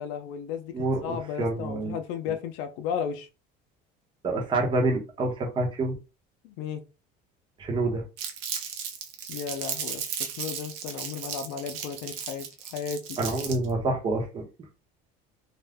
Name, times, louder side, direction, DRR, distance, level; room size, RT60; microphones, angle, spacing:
voice 1, 0.0-3.3 6.4-6.8 9.3-12.5 12.7-13.2, left 7 dB, 80° left, 0.5 m, -34 dB
voice 2, 0.7-2.0 4.2-6.0 7.6-8.0 13.2-14.4, right 2 dB, 25° right, 0.8 m, -27 dB
Crumpling crinkling, 8.2-13.7, right 7 dB, 75° right, 0.7 m, -35 dB
2.5 x 2.2 x 3.4 m
cardioid pair, 160°, 19 cm